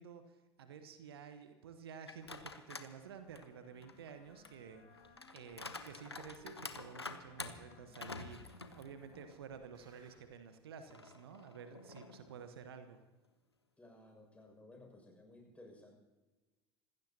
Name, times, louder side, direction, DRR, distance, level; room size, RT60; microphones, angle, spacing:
voice 1, 0.0-13.0, right 6 dB, 70° right, 9 dB, 1.2 m, -52 dB
sound 1, 2.0-2.9 3.4-9.4 9.8-9.9 10.9-12.4, left 3 dB, 90° left, 0.9 m, -49 dB
sound 2, 2.2-2.4 3.3-3.4 4.3-4.7 5.0-6.5 7.3-7.4 8.3-8.7 9.0-10.2, right 3 dB, 30° right, 6.0 m, -68 dB
Wind instrument woodwind instrument, 2.9-10.2, left 2 dB, 60° left, 7.0 m, -65 dB
voice 2, 13.8-15.9, left 2 dB, 10° left, 2 dB, 6.4 m, -57 dB
26.5 x 16.0 x 2.9 m, 1.2 s
figure-of-eight pair, 70°, 13 cm